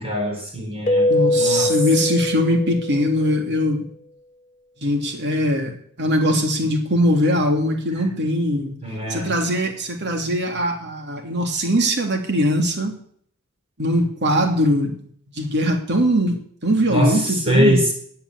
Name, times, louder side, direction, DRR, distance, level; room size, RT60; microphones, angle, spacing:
voice 1, 0.0-1.1 1.3-1.7 8.8-9.3 16.9-17.9, equal, 25° right, 1 dB, 4.4 m, -22 dB
Keyboard (musical), 0.9-3.4, left 1 dB, 35° left, 0.8 m, -22 dB
voice 2, 1.1-3.8 4.8-8.8 9.1-13.0 13.8-15.0 15.3-17.8, equal, 55° right, 4 dB, 3.0 m, -21 dB
16.5 x 8.8 x 8.3 m, 0.62 s
head